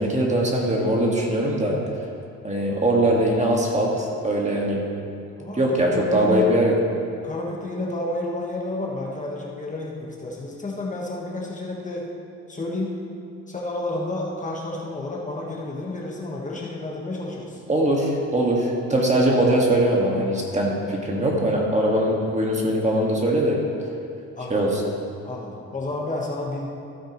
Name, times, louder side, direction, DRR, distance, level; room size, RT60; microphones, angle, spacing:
voice 1, 0.0-1.8 2.4-4.8 5.5-6.7 17.7-23.6 24.5-24.8, right 1 dB, 25° right, -2 dB, 1.9 m, -21 dB
voice 2, 5.4-6.5 7.2-12.1 12.5-13.0 13.5-17.6 24.4-24.7 25.2-26.7, left 2 dB, 25° left, -3 dB, 1.5 m, -31 dB
14.5 x 8.1 x 3.1 m, 2.6 s
cardioid pair, 90°, 30 cm